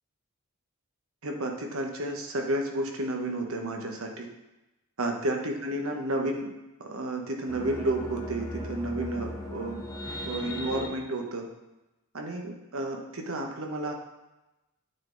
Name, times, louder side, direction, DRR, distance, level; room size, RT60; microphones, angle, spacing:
voice 1, 1.2-4.3 5.0-6.5 6.8-9.8 10.2-11.5 12.1-13.9, right 1 dB, 70° right, 2 dB, 1.0 m, -31 dB
sound 1, 7.5-10.9, left 1 dB, 15° left, 1.0 m, -37 dB
8.7 x 3.9 x 3.9 m, 1.0 s
head